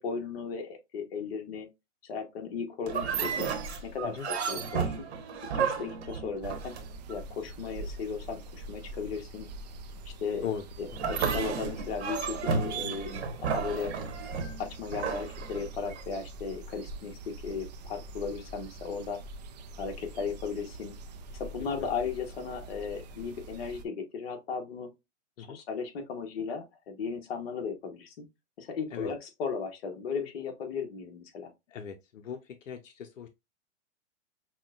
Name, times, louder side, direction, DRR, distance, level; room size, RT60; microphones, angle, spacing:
voice 1, 0.0-1.7 2.0-3.5 3.8-5.0 5.5-6.8 7.1-9.5 10.0-10.5 10.8-13.9 14.6-19.2 19.8-20.9 21.3-24.9 25.4-28.2 28.6-31.5, left 5 dB, 55° left, 1.2 m, -36 dB
sound 1, 2.9-7.2 10.9-16.0, right 6 dB, 60° right, 1.1 m, -32 dB
sound 2, 6.4-23.8, right 2 dB, 35° right, 0.4 m, -45 dB
voice 2, 31.7-32.4 32.7-33.3, left 8 dB, 90° left, 0.6 m, -37 dB
5.7 x 2.2 x 2.4 m
hypercardioid pair, 145°, 37 cm